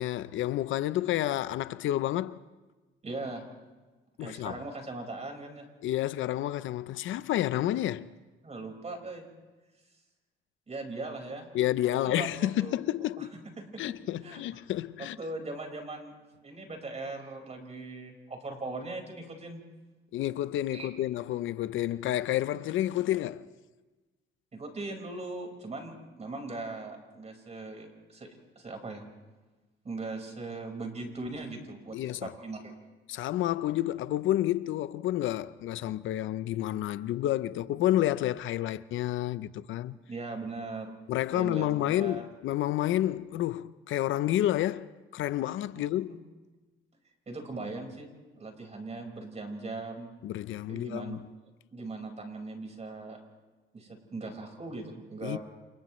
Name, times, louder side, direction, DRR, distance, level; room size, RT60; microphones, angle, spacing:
voice 1, 0.0-2.4 4.2-4.6 5.8-8.1 11.5-13.3 13.8-15.2 20.1-23.5 31.9-32.3 33.1-40.0 41.1-46.2 50.2-51.2 55.2-55.4, left 13 dB, 80° left, 0.6 m, -30 dB
voice 2, 3.0-3.4 4.2-5.7 8.4-9.2 10.7-11.5 11.9-12.8 13.2-13.3 13.6-14.0 14.2-14.4 15.0-16.1 16.4-19.6 20.7-20.9 24.5-29.0 29.8-32.7 40.1-40.9 41.3-42.2 45.7-46.2 47.3-48.1 48.4-50.1 50.7-51.2 51.7-53.2 53.7-55.4, right 3 dB, 35° right, 5.0 m, -39 dB
29.0 x 29.0 x 3.2 m
cardioid pair, 90°, 20 cm